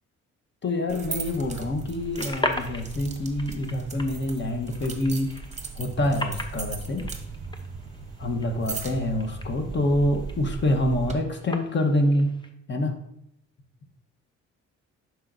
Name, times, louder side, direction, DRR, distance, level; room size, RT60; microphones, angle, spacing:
voice 1, 0.6-5.3 5.8-7.1 8.2-12.3 12.7-12.9, left 1 dB, 35° left, 5 dB, 1.2 m, -26 dB
sound 1, 0.9-11.1, right 5 dB, 25° right, 1.0 m, -37 dB
sound 2, 1.9-12.5, left 2 dB, 15° left, 0.8 m, -38 dB
11.0 x 4.6 x 2.6 m, 0.79 s
cardioid pair, 90°, 30 cm